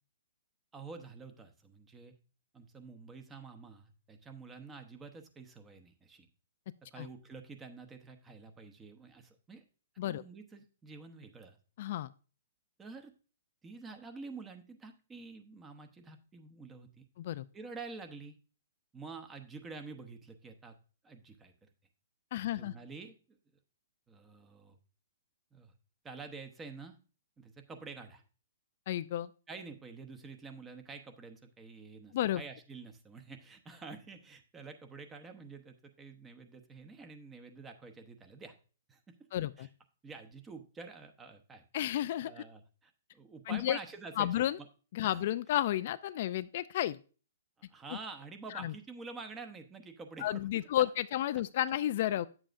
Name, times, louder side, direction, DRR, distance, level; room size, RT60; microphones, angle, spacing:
voice 1, 0.7-2.1 2.5-6.3 6.9-9.6 10.1-11.6 12.8-13.1 13.6-17.0 17.5-18.4 18.9-20.7 21.0-21.7 22.4-23.4 24.1-24.8 25.5-25.7 26.0-27.0 27.4-28.2 29.5-38.6 38.9-39.2 39.6-39.7 40.0-41.6 42.2-44.7 45.0-45.2 47.7-50.7, right 4 dB, 15° right, 6 dB, 0.9 m, -48 dB
voice 2, 11.8-12.1 17.2-17.4 22.3-22.7 28.9-29.3 32.1-32.4 39.3-39.7 41.7-42.4 43.5-43.8 44.2-44.6 44.9-47.0 48.6-48.7 50.2-52.3, left 12 dB, 50° left, 14 dB, 0.3 m, -32 dB
8.8 x 7.4 x 2.5 m, 0.37 s
hypercardioid pair, 135°, 0 cm